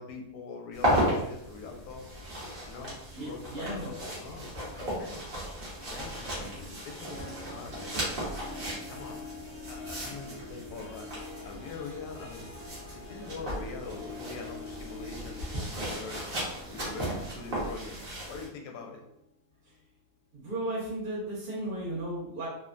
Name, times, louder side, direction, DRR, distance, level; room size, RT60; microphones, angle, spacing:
voice 1, 0.0-2.2 2.7-5.2 5.9-7.9 8.9-11.1 11.4-12.5 13.1-16.2 16.7-18.0 18.3-19.0, left 4 dB, 80° left, 2 dB, 1.1 m, -43 dB
sound 1, 0.7-18.5, equal, 40° right, 1.0 m, -35 dB
voice 2, 3.1-3.9 20.3-22.5, right 1 dB, 90° right, -6 dB, 1.5 m, -35 dB
Harp, 5.7-18.5 18.9-19.3 19.8-19.9, left 4 dB, 50° left, 0.8 m, -47 dB
sound 2, 7.1-18.4, right 3 dB, 70° right, 1.0 m, -53 dB
3.1 x 2.1 x 2.4 m, 0.80 s
omnidirectional pair, 1.7 m